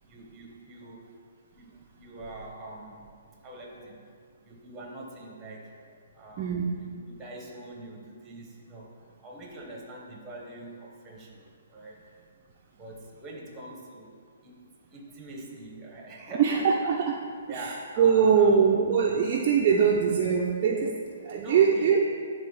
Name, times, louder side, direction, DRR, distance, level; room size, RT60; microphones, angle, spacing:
voice 1, 0.0-1.1 1.5-3.1 3.4-4.0 4.4-12.0 12.7-14.1 14.4-14.6 14.9-17.0 17.5-19.2 19.6-19.9 21.4-22.0, right 1 dB, 10° right, -1 dB, 1.0 m, -44 dB
voice 2, 6.4-6.8 16.4-17.2 17.5-17.7 18.0-22.0, right 6 dB, 25° right, -2 dB, 0.4 m, -23 dB
9.7 x 3.8 x 4.7 m, 2.2 s
hypercardioid pair, 170°, 0 cm